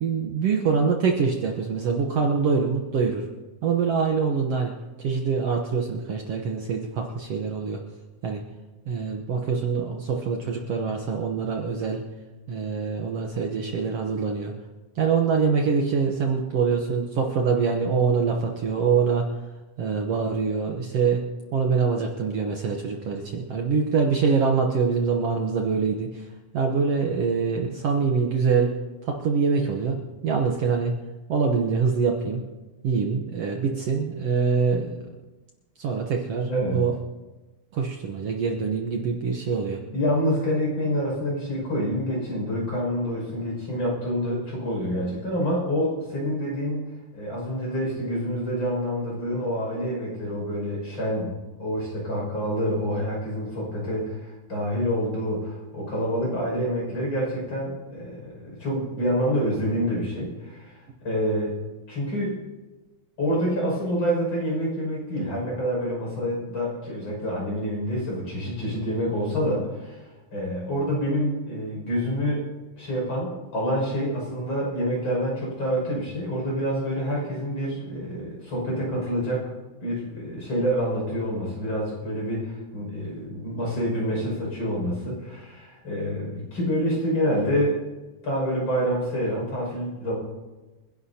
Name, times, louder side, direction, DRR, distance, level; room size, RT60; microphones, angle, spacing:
voice 1, 0.0-3.3 3.6-4.7 5.0-7.8 8.2-8.4 8.9-12.0 12.5-14.5 15.0-19.3 19.8-21.2 21.5-26.3 26.5-28.8 29.0-30.9 31.3-32.4 32.8-35.2 35.8-37.0 37.7-39.8, right 5 dB, 60° right, 2 dB, 1.9 m, -24 dB
voice 2, 36.5-36.9 39.9-46.8 47.1-61.5 61.9-62.4 63.2-72.4 72.8-79.4 79.8-87.8 88.2-90.1, equal, 40° left, -3 dB, 6.8 m, -27 dB
29.0 x 11.0 x 2.8 m, 1.1 s
omnidirectional pair, 3.5 m